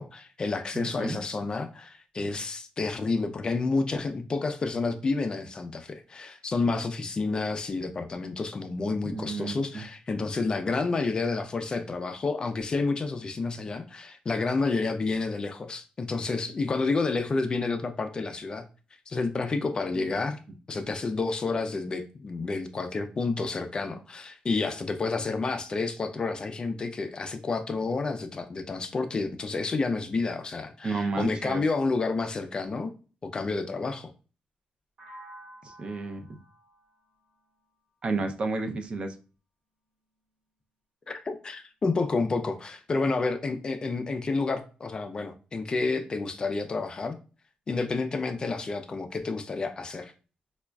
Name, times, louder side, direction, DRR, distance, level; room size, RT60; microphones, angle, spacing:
voice 1, 0.0-18.6 19.1-20.4 20.7-32.9 33.2-34.1 41.1-47.2 47.7-50.1, left 3 dB, 30° left, 0.3 m, -30 dB
voice 2, 0.7-1.2 9.0-9.8 20.0-20.1 30.8-31.6 35.6-36.4 38.0-39.1, right 3 dB, 40° right, 0.4 m, -31 dB
sound 1, 35.0-38.9, right 1 dB, 75° right, 1.2 m, -52 dB
5.0 x 2.3 x 2.2 m
wide cardioid pair, 160°, 3 cm